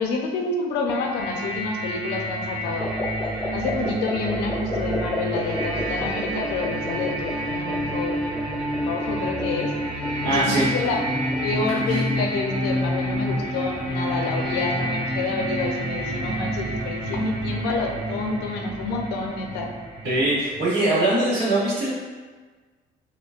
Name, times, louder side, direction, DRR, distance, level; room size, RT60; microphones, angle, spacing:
voice 1, 0.0-2.9 3.5-8.2 8.8-9.7 10.2-11.0 11.4-19.7, left 4 dB, 85° left, 2 dB, 0.5 m, -28 dB
sound 1, 0.9-20.6, right 1 dB, 40° right, 1.2 m, -28 dB
sound 2, 2.8-12.4, left 1 dB, 10° left, 0.3 m, -33 dB
voice 2, 10.2-10.7 11.9-12.0 20.0-21.9, right 1 dB, 85° right, -7 dB, 1.1 m, -22 dB
5.1 x 2.0 x 2.4 m, 1.4 s
cardioid pair, 110°, 17 cm